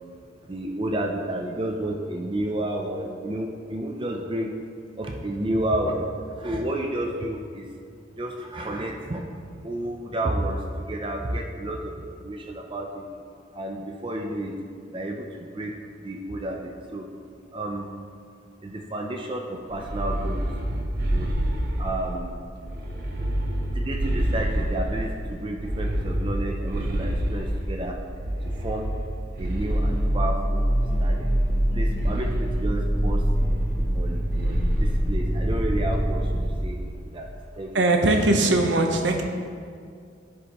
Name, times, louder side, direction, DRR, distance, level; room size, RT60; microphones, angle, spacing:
voice 1, 0.5-4.5 5.0-6.1 6.3-7.7 8.1-9.3 9.6-13.0 13.5-14.5 14.9-15.7 16.0-17.1 17.5-17.9 18.6-20.4 21.0-21.3 21.8-22.4 23.7-28.0 28.4-28.9 29.4-31.3 31.7-33.2 33.9-37.3 37.6-37.7, right 1 dB, 25° right, 1 dB, 0.5 m, -31 dB
sound 1, 19.7-22.1 22.6-25.1 25.5-27.7 28.2-30.0 30.7-31.6 31.9-32.4 33.3-34.0 34.3-34.8, right 1 dB, 55° right, 1.2 m, -28 dB
sound 2, 29.7-36.5, equal, 10° right, 2.1 m, -24 dB
voice 2, 37.7-39.2, right 2 dB, 70° right, 4 dB, 0.8 m, -20 dB
13.5 x 5.1 x 3.0 m, 2.2 s
head